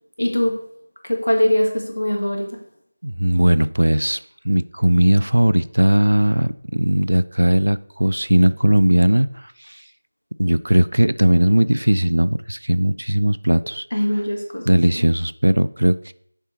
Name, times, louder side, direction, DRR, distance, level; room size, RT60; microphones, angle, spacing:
voice 1, 0.2-0.6 1.0-2.5 13.9-15.0, left 1 dB, 85° left, 1 dB, 1.8 m, -21 dB
voice 2, 3.0-9.8 10.4-13.9 14.7-16.1, right 1 dB, 75° right, 16 dB, 0.3 m, -18 dB
6.7 x 4.4 x 4.5 m, 0.67 s
figure-of-eight pair, 170°, 0 cm